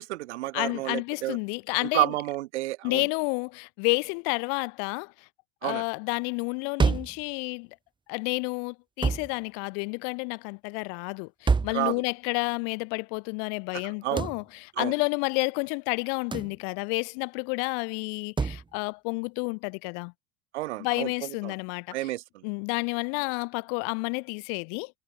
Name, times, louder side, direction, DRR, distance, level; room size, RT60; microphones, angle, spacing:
voice 1, 0.0-1.4 1.8-3.1 5.6-5.8 11.7-12.0 13.7-14.3 14.8-14.9 20.5-21.5 21.9-22.4, right 17 dB, 85° right, 4.9 m, -30 dB
voice 2, 0.5-2.1 2.8-5.3 5.6-7.7 8.1-20.1 20.8-22.1 22.4-24.9, left 40 dB or more, 60° left, 6.6 m, -30 dB
sound 1, 6.8-7.2 9.0-9.3 11.5-11.8 14.2-14.4 16.3-16.6 18.4-18.6, right 4 dB, 15° right, 2.1 m, -25 dB
supercardioid pair, 130°, 33 cm